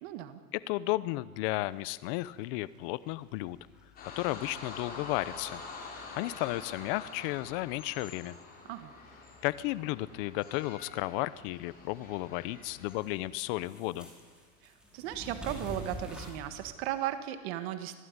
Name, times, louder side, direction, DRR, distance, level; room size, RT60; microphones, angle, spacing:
voice 1, 0.0-0.4 8.7-8.9 14.6-18.0, right 12 dB, 50° right, 10 dB, 1.6 m, -36 dB
voice 2, 0.5-3.6 4.0-8.3 9.4-14.1, left 18 dB, 40° left, 16 dB, 0.8 m, -34 dB
sound 1, 1.5-16.7, equal, ahead, 4.8 m, -51 dB
sound 2, 4.0-13.0, left 3 dB, 20° left, 6.1 m, -47 dB
26.0 x 16.5 x 9.6 m, 1.4 s
supercardioid pair, 165°, 42 cm